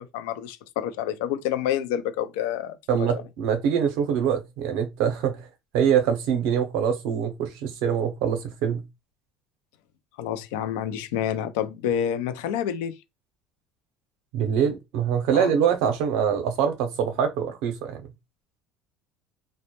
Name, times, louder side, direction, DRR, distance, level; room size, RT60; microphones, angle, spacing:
voice 1, 0.0-3.2 10.2-13.0 15.3-15.5, left 10 dB, 80° left, 0.3 m, -28 dB
voice 2, 2.9-5.5 5.7-8.8 14.3-18.0, right 8 dB, 75° right, 0.6 m, -24 dB
2.1 x 2.1 x 2.8 m
supercardioid pair, 85°, 0 cm